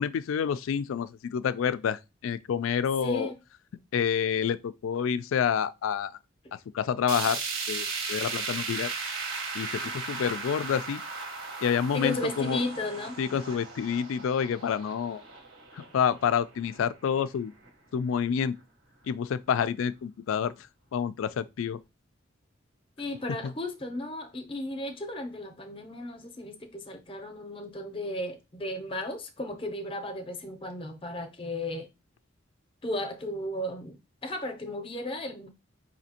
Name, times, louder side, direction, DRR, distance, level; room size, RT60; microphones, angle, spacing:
voice 1, 0.0-3.3 3.9-6.1 6.7-7.4 7.7-8.9 9.5-11.0 11.6-12.6 13.2-15.2 15.7-17.5 17.9-18.6 19.1-21.8 23.4-23.5, left 7 dB, 80° left, 0.3 m, -28 dB
voice 2, 3.0-3.3 9.8-9.9 11.9-13.6 23.0-31.9 32.8-35.5, left 1 dB, 25° left, 0.6 m, -35 dB
sound 1, 7.1-17.2 17.6-17.7 18.1-18.2 19.1-19.2, right 4 dB, 80° right, 1.4 m, -36 dB
5.1 x 2.7 x 2.8 m
head